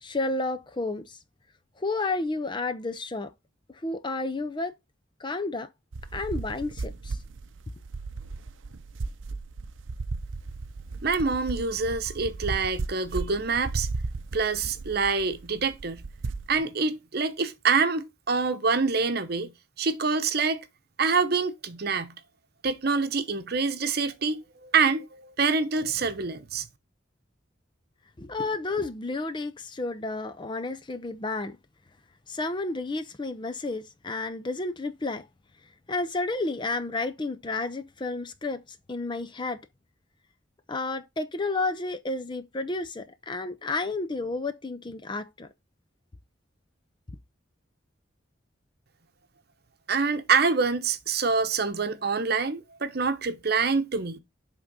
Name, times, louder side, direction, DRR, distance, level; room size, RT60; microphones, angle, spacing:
voice 1, 0.0-1.2 1.8-3.3 3.7-4.7 5.2-5.7 6.1-7.2 28.2-31.6 32.3-35.3 35.9-38.6 38.9-39.6 40.7-45.5, left 3 dB, 25° left, 0.5 m, -31 dB
sound 1, 5.9-16.6, right 3 dB, 90° right, 0.6 m, -35 dB
voice 2, 11.0-13.9 14.3-16.0 16.5-19.5 19.8-20.6 21.0-22.1 22.6-26.7 49.9-54.2, right 4 dB, 55° right, 0.9 m, -26 dB
6.2 x 3.7 x 5.3 m
head